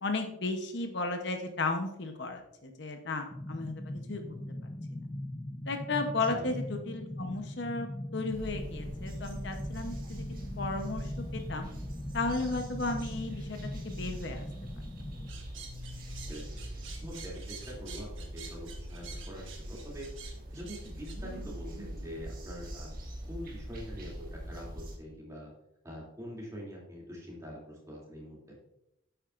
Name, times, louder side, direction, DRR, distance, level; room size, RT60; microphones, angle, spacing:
voice 1, 0.0-4.2 5.7-10.2 10.6-11.7 12.1-13.6 13.8-14.5, left 3 dB, 55° left, 5 dB, 0.8 m, -34 dB
sound 1, 3.3-15.3, left 1 dB, 20° left, 0.5 m, -40 dB
voice 2, 6.2-6.5 16.3-20.1 20.5-22.9 23.3-25.5 25.8-28.6, equal, 15° right, -4 dB, 2.6 m, -44 dB
sound 2, 8.3-25.0, equal, 45° right, 1.6 m, -43 dB
sound 3, 15.3-21.2, right 6 dB, 70° right, 1.5 m, -48 dB
8.9 x 8.9 x 2.5 m, 0.83 s
head